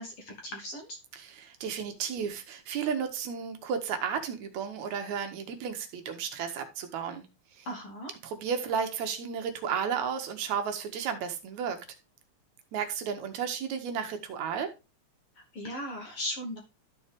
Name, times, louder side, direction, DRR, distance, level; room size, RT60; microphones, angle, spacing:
voice 1, 0.0-1.0 7.6-8.1 15.3-16.6, equal, 55° left, 1.7 m, -38 dB
voice 2, 1.2-7.3 7.5-7.7 8.2-11.8 12.7-14.7, right 7 dB, 70° right, 2.0 m, -33 dB
13.0 x 4.3 x 3.3 m
omnidirectional pair, 3.6 m